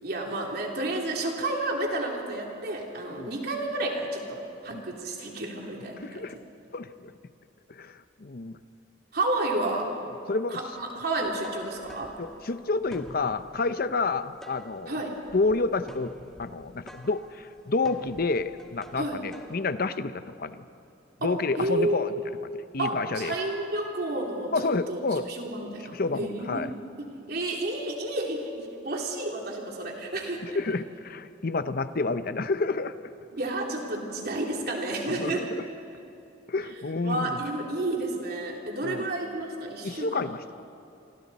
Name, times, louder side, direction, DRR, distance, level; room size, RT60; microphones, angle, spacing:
voice 1, 0.0-6.3 9.1-9.9 10.5-12.1 14.9-15.1 18.9-19.2 21.2-22.3 22.8-25.0 25.3-26.7 27.0-30.6 33.3-35.5 37.0-40.2, right 2 dB, 55° right, 0 dB, 3.3 m, -31 dB
voice 2, 6.0-6.4 6.7-7.1 7.7-8.6 10.3-10.6 12.2-15.0 15.3-16.1 16.4-20.6 21.2-22.1 22.4-23.3 24.5-25.3 25.9-26.7 30.4-33.1 35.1-35.6 36.5-37.4 38.8-39.1 39.8-40.4, left 3 dB, 50° left, 12 dB, 0.7 m, -29 dB
sound 1, 11.3-19.6, equal, 5° left, 1.5 m, -49 dB
28.5 x 25.0 x 4.2 m, 2.7 s
head